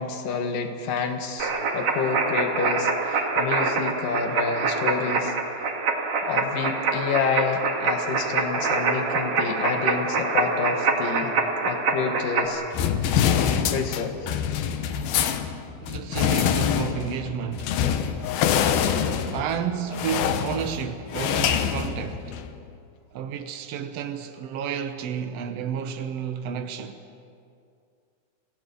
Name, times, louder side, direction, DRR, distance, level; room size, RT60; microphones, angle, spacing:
voice 1, 0.0-5.3 6.2-11.3 11.6-12.6 13.7-14.3, left 6 dB, 70° left, 3.2 m, -28 dB
sound 1, 1.4-12.5, right 4 dB, 50° right, 2.9 m, -25 dB
sound 2, 12.7-22.5, left 8 dB, 90° left, 2.9 m, -25 dB
voice 2, 15.8-17.7 19.3-22.4 23.1-27.0, right 8 dB, 80° right, 1.4 m, -31 dB
27.5 x 17.5 x 7.0 m
omnidirectional pair, 4.1 m